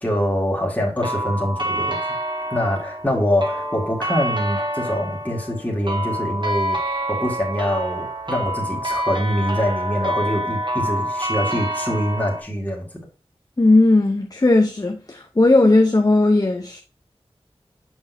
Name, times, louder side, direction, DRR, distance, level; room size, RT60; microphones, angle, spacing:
voice 1, 0.0-2.0 2.5-6.8 7.1-12.9, equal, 15° left, 2.1 m, -24 dB
sound 1, 1.0-12.4, right 1 dB, 45° right, 1.7 m, -27 dB
voice 2, 13.6-16.8, left 2 dB, 35° left, 0.8 m, -16 dB
6.2 x 6.1 x 2.7 m
wide cardioid pair, 45°, 11 cm